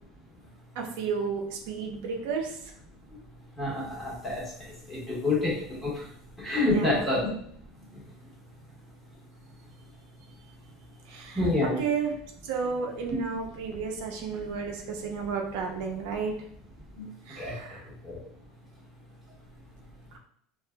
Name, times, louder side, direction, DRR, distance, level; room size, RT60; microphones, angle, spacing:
voice 1, 0.8-2.6 6.7-7.2 11.1-12.1 12.4-16.3 17.3-17.8, right 5 dB, 70° right, 1 dB, 0.6 m, -32 dB
voice 2, 3.6-4.4 4.9-6.0 6.4-7.3 11.3-11.8 16.9-17.1 17.4-17.5 18.0-18.2, left 2 dB, 5° left, -6 dB, 1.3 m, -27 dB
3.8 x 2.4 x 2.2 m, 0.64 s
supercardioid pair, 135°, 0 cm